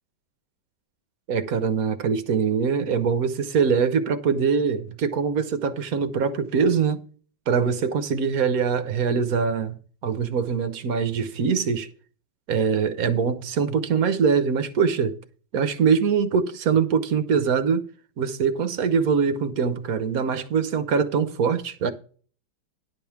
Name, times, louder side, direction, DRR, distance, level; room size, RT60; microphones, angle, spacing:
voice 1, 1.3-7.0 7.5-9.8 10.0-11.9 12.5-15.1 15.5-17.8 18.2-21.9, right 6 dB, 60° right, 1.1 m, -23 dB
11.0 x 5.3 x 5.9 m
omnidirectional pair, 2.1 m